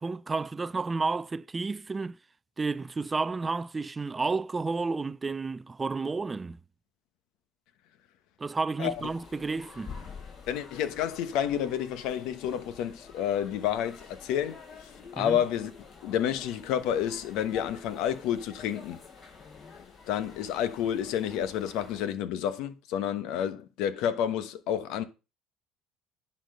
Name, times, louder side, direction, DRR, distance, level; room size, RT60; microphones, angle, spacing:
voice 1, 0.0-2.2 2.6-6.6 8.4-10.0 15.2-15.4, right 4 dB, 20° right, 0.3 m, -31 dB
sound 1, 8.9-22.1, left 5 dB, 45° left, 4.1 m, -48 dB
voice 2, 10.5-14.6 15.1-15.7 16.0-19.0 20.1-25.0, left 9 dB, 75° left, 1.1 m, -30 dB
10.0 x 4.4 x 5.6 m
supercardioid pair, 95°, 0 cm